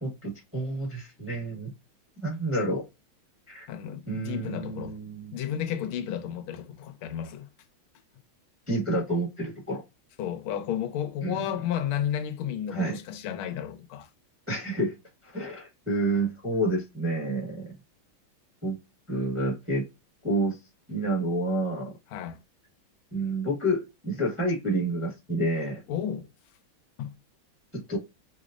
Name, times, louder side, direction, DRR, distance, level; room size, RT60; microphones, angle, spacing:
voice 1, 0.0-1.7 2.2-2.8 3.5-3.7 4.1-5.4 8.7-9.8 11.2-11.4 12.7-13.0 14.5-14.9 15.2-17.7 18.6-18.7 19.1-19.9 20.2-20.6 20.9-21.9 23.1-25.8 27.7-28.0, right 1 dB, 10° right, 0.8 m, -29 dB
voice 2, 3.7-5.0 5.3-7.5 10.2-14.1 22.1-22.4 25.9-26.3 27.0-27.1, left 10 dB, 90° left, 1.5 m, -32 dB
4.8 x 2.0 x 2.4 m
omnidirectional pair, 2.3 m